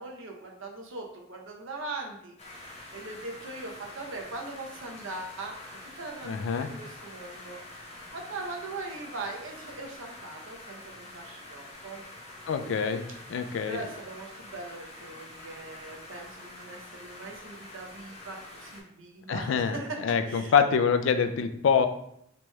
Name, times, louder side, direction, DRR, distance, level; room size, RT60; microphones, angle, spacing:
voice 1, 0.0-12.0 13.1-20.7, right 2 dB, 70° right, 1 dB, 0.7 m, -41 dB
sound 1, 2.4-18.8, left 1 dB, 30° left, 0.6 m, -46 dB
voice 2, 6.3-6.7 12.5-13.0 13.3-13.8 19.3-19.8 20.0-21.9, left 6 dB, 65° left, 9 dB, 0.3 m, -25 dB
4.4 x 3.0 x 2.2 m, 0.74 s
head